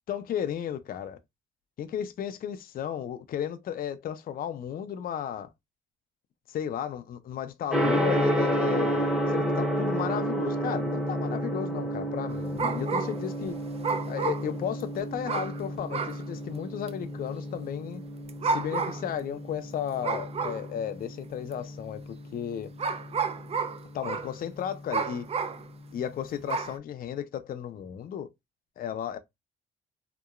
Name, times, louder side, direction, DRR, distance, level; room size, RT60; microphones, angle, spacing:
voice 1, 0.1-1.2 1.8-5.5 6.5-13.6 14.1-18.0 18.4-22.7 23.9-25.3 25.9-28.3 28.8-29.2, left 9 dB, 50° left, 0.4 m, -34 dB
Gong, 7.7-26.7, equal, 5° right, 0.8 m, -32 dB
sound 1, 12.3-13.3 13.8-14.8 15.3-15.6 15.9-16.2 16.9-17.0 18.3-19.1 20.0-20.7 21.5-21.6 22.8-24.3 24.9-25.7 26.5-26.8, right 5 dB, 30° right, 0.3 m, -31 dB
2.8 x 2.2 x 2.3 m
cardioid pair, 90°, 20 cm